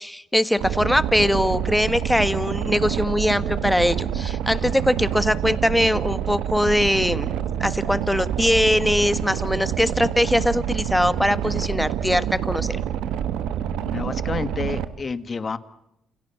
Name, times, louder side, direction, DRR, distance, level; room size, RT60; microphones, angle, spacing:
voice 1, 0.0-7.3 7.6-12.2 12.5-12.8, left 1 dB, 5° left, 12 dB, 1.5 m, -21 dB
Boat Water vehicle, 0.6-14.8, right 9 dB, 90° right, 1.5 m, -27 dB
voice 2, 13.9-15.6, left 4 dB, 35° left, 12 dB, 1.6 m, -29 dB
29.5 x 28.0 x 5.9 m, 0.83 s
cardioid pair, 90°, 0 cm